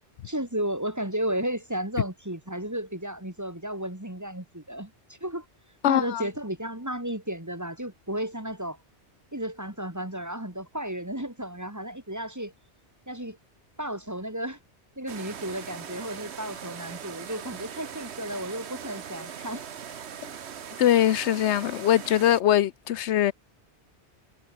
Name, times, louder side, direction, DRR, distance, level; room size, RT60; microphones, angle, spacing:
voice 1, 0.2-5.5 5.8-8.8 9.3-12.5 13.1-13.4 13.8-14.6 15.0-19.6, right 1 dB, 15° right, 2.7 m, -33 dB
voice 2, 5.8-6.2 20.8-23.3, left 11 dB, 80° left, 0.9 m, -22 dB
sound 1, 15.1-22.4, right 8 dB, 70° right, 1.3 m, -40 dB
omnidirectional pair, 1.1 m